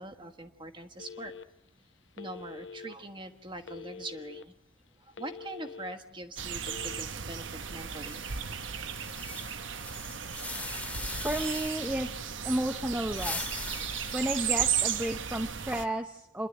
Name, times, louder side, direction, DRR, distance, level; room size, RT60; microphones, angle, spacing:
voice 1, 0.0-1.3 2.2-4.5 5.0-8.3, right 1 dB, 25° right, 6 dB, 1.4 m, -43 dB
Telephone, 1.0-1.7 2.1-2.9 3.6-4.4 4.9-5.9 6.6-7.0, left 5 dB, 65° left, 0.7 m, -45 dB
sound 1, 6.4-15.8, right 8 dB, 75° right, 1.1 m, -35 dB
sound 2, 7.9-12.1 12.9-15.2, left 3 dB, 10° left, 1.6 m, -41 dB
voice 2, 11.2-12.1 12.4-13.5 14.1-16.5, right 1 dB, 10° right, 5 dB, 0.7 m, -32 dB
27.5 x 11.5 x 9.1 m, 0.84 s
head